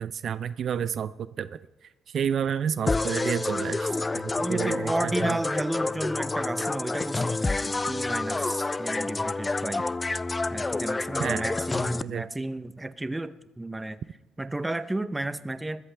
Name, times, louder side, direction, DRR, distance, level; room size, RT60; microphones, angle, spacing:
voice 1, 0.0-1.6 2.1-5.4 11.2-11.5 12.0-12.3, right 8 dB, 60° right, 15 dB, 0.4 m, -30 dB
sound 1, 2.9-12.0, left 3 dB, 20° left, 0.4 m, -28 dB
voice 2, 4.4-9.8 10.5-14.0 14.4-15.8, right 2 dB, 15° right, 13 dB, 0.7 m, -32 dB
21.0 x 13.5 x 3.4 m, 1.1 s
cardioid pair, 90°, 0 cm